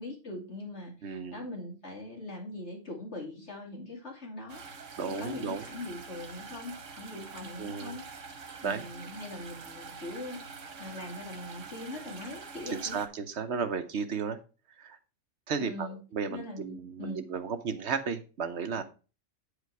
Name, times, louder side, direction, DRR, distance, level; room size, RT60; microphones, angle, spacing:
voice 1, 0.0-10.4 10.8-13.0 15.6-16.0 16.3-17.2, left 2 dB, 65° left, -1 dB, 2.9 m, -42 dB
voice 2, 1.0-1.4 5.0-5.6 7.6-8.0 8.6-8.8 12.7-14.4 14.8-15.0 15.5-18.8, right 5 dB, 65° right, 9 dB, 1.1 m, -34 dB
sound 1, 4.5-13.1, right 5 dB, 85° right, 1.6 m, -46 dB
9.1 x 5.0 x 4.7 m, 0.33 s
omnidirectional pair, 1.3 m